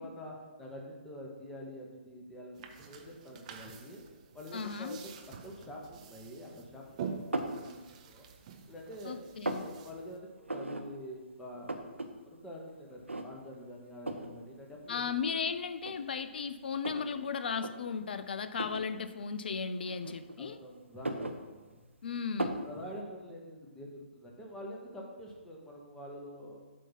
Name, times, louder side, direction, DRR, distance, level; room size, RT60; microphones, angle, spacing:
voice 1, 0.0-4.0 4.3-5.1 5.4-7.8 8.1-8.2 8.7-9.2 9.5-11.7 12.2-15.0 20.4-21.8 22.6-26.6, equal, 10° left, -1 dB, 0.9 m, -46 dB
sound 1, 2.5-10.2, right 6 dB, 35° right, 0.6 m, -47 dB
voice 2, 4.5-5.0 9.1-9.6 14.9-20.6 22.0-22.6, left 6 dB, 55° left, 11 dB, 0.4 m, -36 dB
sound 2, 7.3-7.6 8.2-8.8 9.1-9.7 10.5-10.8 11.2-11.3 11.5-12.1 12.4-12.5 13.1-13.5 14.1-14.3 15.2-15.3 15.8-17.1 17.5-17.7 18.5-18.9 19.8-20.5 20.9-21.9 22.4-22.7, right 2 dB, 80° right, 0.6 m, -36 dB
7.7 x 2.8 x 5.7 m, 1.3 s
figure-of-eight pair, 130°, 6 cm